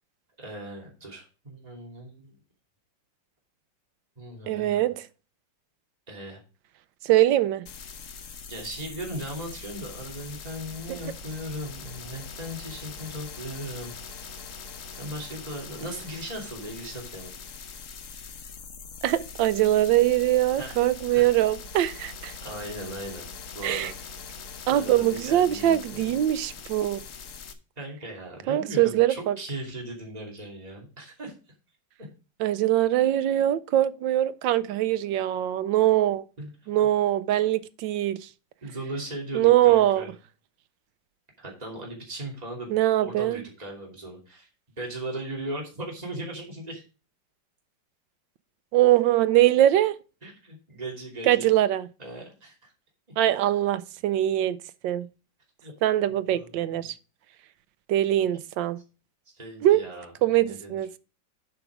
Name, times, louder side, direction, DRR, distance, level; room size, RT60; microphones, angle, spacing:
voice 1, 0.4-2.4 4.2-4.8 6.1-6.4 8.5-14.4 14.9-17.3 20.6-20.8 21.1-21.3 22.4-23.3 23.5-23.9 24.7-26.1 27.8-31.3 36.4-36.5 36.8-36.9 38.6-40.1 41.4-42.7 43.0-44.5 44.8-46.8 50.2-51.5 52.0-52.7 55.6-55.7 56.1-56.9 59.3-60.8, right 1 dB, 20° right, 2.8 m, -38 dB
voice 2, 4.5-5.1 7.0-7.7 10.9-11.0 19.0-22.3 23.6-23.9 24.7-27.0 28.5-29.4 32.4-36.2 36.7-38.2 39.3-40.0 42.7-43.4 48.7-50.0 51.3-51.9 53.2-54.6 54.8-55.1 55.8-56.9 57.9-58.8 59.6-59.9 60.2-60.9, right 13 dB, 85° right, 1.4 m, -22 dB
sound 1, 7.7-27.5, left 5 dB, 50° left, 1.2 m, -42 dB
8.1 x 6.0 x 5.0 m
omnidirectional pair, 2.0 m